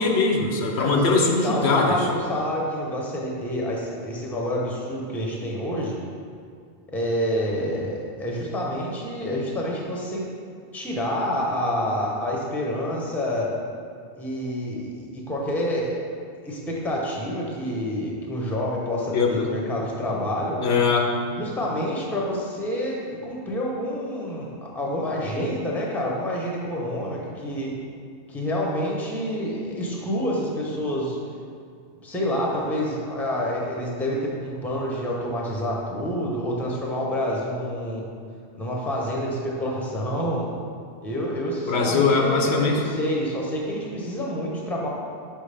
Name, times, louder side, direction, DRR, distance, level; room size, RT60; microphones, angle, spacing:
voice 1, 0.0-2.1 19.1-19.5 20.6-21.2 41.7-42.8, left 4 dB, 70° left, 1 dB, 0.9 m, -21 dB
voice 2, 0.8-6.0 6.9-10.2 10.7-13.5 14.2-16.0 16.4-20.6 21.3-27.7 28.3-31.2 32.0-38.0 38.6-40.5 41.0-44.9, equal, ahead, -3 dB, 0.7 m, -28 dB
5.8 x 5.5 x 3.3 m, 2.2 s
omnidirectional pair, 1.1 m